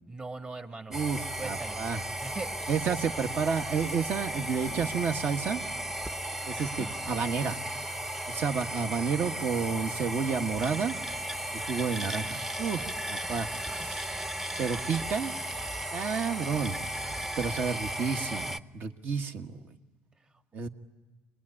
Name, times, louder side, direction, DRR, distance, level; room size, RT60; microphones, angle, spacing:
voice 1, 0.1-0.9 1.4-1.8 2.2-2.6 6.8-6.9, right 3 dB, 30° right, 6 dB, 1.7 m, -40 dB
sound 1, 0.9-18.6, right 1 dB, 10° right, 0.7 m, -35 dB
voice 2, 0.9-2.0 2.7-5.6 6.5-7.6 8.3-11.0 11.5-13.5 13.8-14.1 14.6-15.3 15.9-16.8 17.1-19.6 20.5-20.7, right 6 dB, 60° right, 6 dB, 1.4 m, -31 dB
25.5 x 19.5 x 9.9 m, 1.4 s
supercardioid pair, 85°, 4 cm